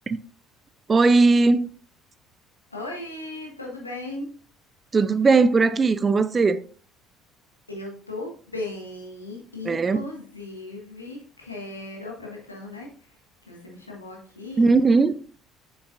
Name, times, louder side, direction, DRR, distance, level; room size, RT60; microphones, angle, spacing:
voice 1, 0.9-1.7 4.9-6.6 9.7-10.0 14.6-15.2, right 4 dB, 30° right, 0.5 m, -18 dB
voice 2, 2.7-4.3 7.7-13.1 13.4-14.7, left 2 dB, 90° left, 1.5 m, -37 dB
7.2 x 7.2 x 2.4 m
figure-of-eight pair, 55°, 0 cm